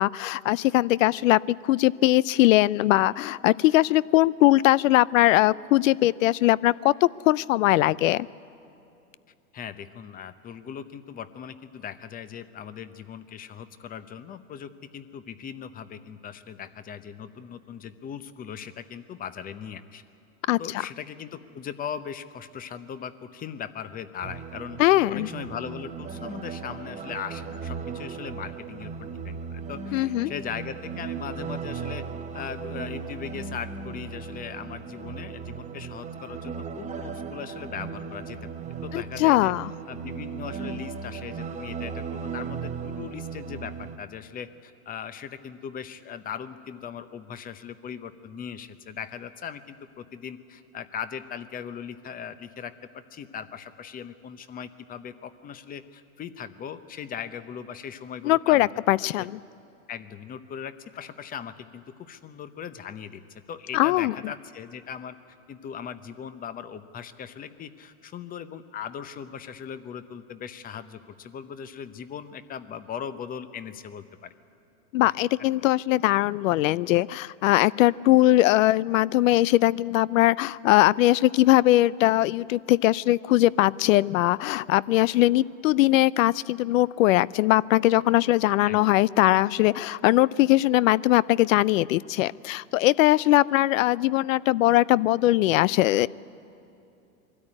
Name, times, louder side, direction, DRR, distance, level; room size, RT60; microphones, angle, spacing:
voice 1, 0.0-8.3 20.5-20.6 24.8-25.3 29.9-30.3 38.9-39.7 58.2-59.4 63.7-64.1 74.9-96.1, left 16 dB, 65° left, 22 dB, 0.5 m, -21 dB
voice 2, 9.5-20.0 20.6-24.8 25.1-32.0 32.3-38.5 38.8-39.5 39.9-52.7 53.1-59.3 59.9-65.2 65.5-74.3 75.0-75.1 88.6-88.8, left 8 dB, 20° left, 13 dB, 0.7 m, -39 dB
sound 1, 24.2-44.0, right 6 dB, 15° right, 0.8 m, -37 dB
22.0 x 13.0 x 9.8 m, 2.7 s
hypercardioid pair, 125°, 43 cm